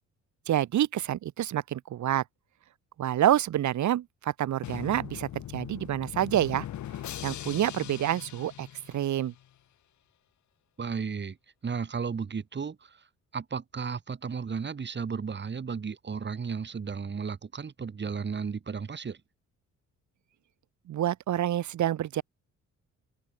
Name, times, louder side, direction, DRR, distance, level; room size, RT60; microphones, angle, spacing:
voice 1, 0.5-2.2 3.0-6.7 7.2-9.3 20.9-22.2, right 12 dB, 75° right, 3.3 m, -28 dB
Drum, 4.6-9.5, left 12 dB, 70° left, 2.3 m, -40 dB
voice 2, 10.8-11.4 11.6-13.0 13.3-19.2, right 5 dB, 35° right, 3.3 m, -34 dB
open air
cardioid pair, 90°, 30 cm